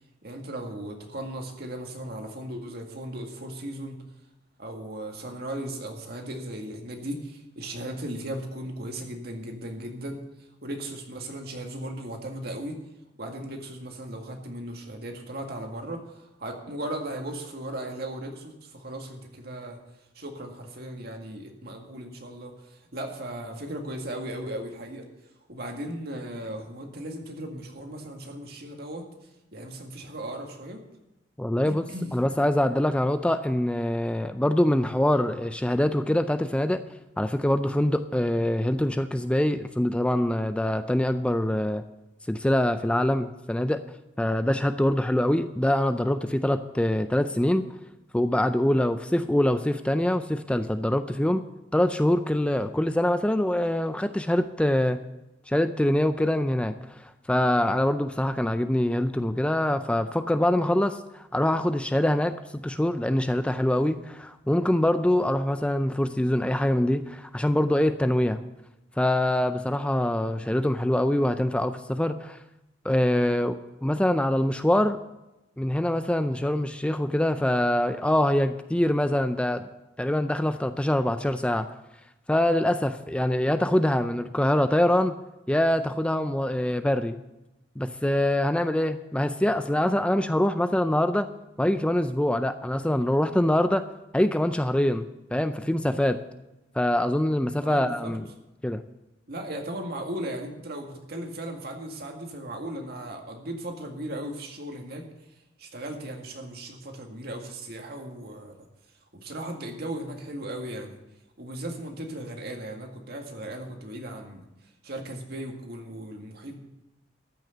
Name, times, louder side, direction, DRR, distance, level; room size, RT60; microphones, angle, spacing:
voice 1, 0.2-4.0 4.6-10.2 10.6-12.8 13.2-19.8 20.2-25.1 25.5-29.0 29.5-30.8 31.7-32.1 97.6-98.1 99.3-105.0 105.6-108.7 109.1-111.0 111.4-114.5 114.8-116.6, right 1 dB, 60° right, 3 dB, 2.0 m, -37 dB
voice 2, 31.4-31.9 32.1-36.8 37.2-41.8 42.3-43.8 44.2-47.6 48.1-51.4 51.7-55.0 55.5-68.4 69.0-72.4 72.8-75.0 75.6-79.7 80.0-81.7 82.3-85.1 85.5-87.2 87.8-91.3 91.6-93.8 94.1-96.2 96.8-98.3 98.6-98.8, left 1 dB, 5° left, 10 dB, 0.4 m, -24 dB
13.5 x 6.3 x 7.9 m, 0.95 s
head